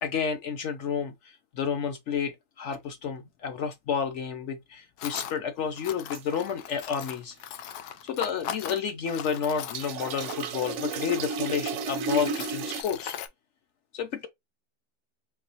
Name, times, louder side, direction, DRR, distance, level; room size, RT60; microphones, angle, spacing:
voice 1, 0.0-7.4 8.0-13.1 13.9-14.3, left 7 dB, 65° left, 0.8 m, -31 dB
Tools, 2.7-2.8 5.0-5.4 5.8-10.7 11.4-11.5 11.9-13.3, left 9 dB, 90° left, 1.1 m, -39 dB
sound 1, 6.1-6.4 9.7-12.8, right 4 dB, 65° right, 0.7 m, -32 dB
4.0 x 2.9 x 2.8 m
omnidirectional pair, 1.6 m